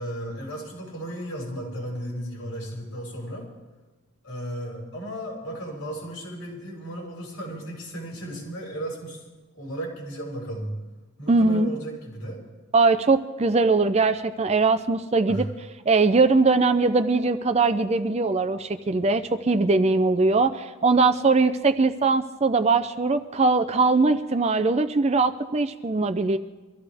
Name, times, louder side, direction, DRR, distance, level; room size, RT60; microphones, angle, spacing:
voice 1, 0.0-3.4 4.2-9.2 9.5-10.8 11.2-12.4 15.3-15.5, right 1 dB, 60° left, -3 dB, 6.7 m, -35 dB
voice 2, 11.3-11.7 12.7-15.5 15.9-26.4, right 3 dB, 30° right, 10 dB, 0.5 m, -21 dB
24.0 x 14.0 x 3.5 m, 1.2 s
head